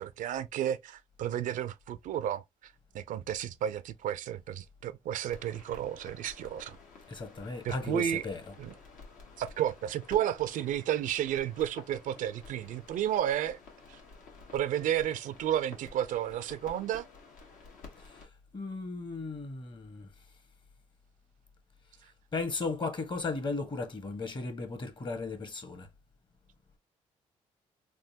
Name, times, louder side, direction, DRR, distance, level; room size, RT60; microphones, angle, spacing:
voice 1, 0.0-6.8 7.6-8.3 8.6-8.7 9.4-13.6 13.9-14.0 14.5-17.1, right 11 dB, 70° right, 0.4 m, -32 dB
sound 1, 5.3-18.3, left 4 dB, 80° left, 1.3 m, -52 dB
voice 2, 7.1-8.4 18.5-20.1 22.3-25.9, left 3 dB, 35° left, 1.1 m, -36 dB
3.5 x 2.6 x 2.7 m
supercardioid pair, 70°, 14 cm